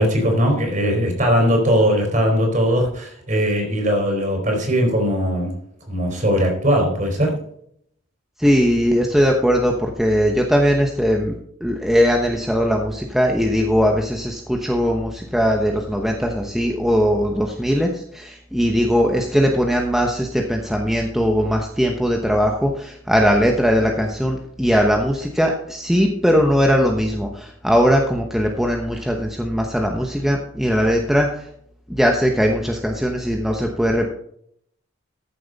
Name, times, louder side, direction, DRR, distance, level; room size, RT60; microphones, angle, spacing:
voice 1, 0.0-5.6 5.9-7.4, equal, 40° right, 2 dB, 4.2 m, -19 dB
voice 2, 8.4-11.3 11.6-31.3 31.9-34.0, equal, ahead, 1 dB, 1.0 m, -19 dB
14.5 x 7.6 x 4.1 m, 0.68 s
head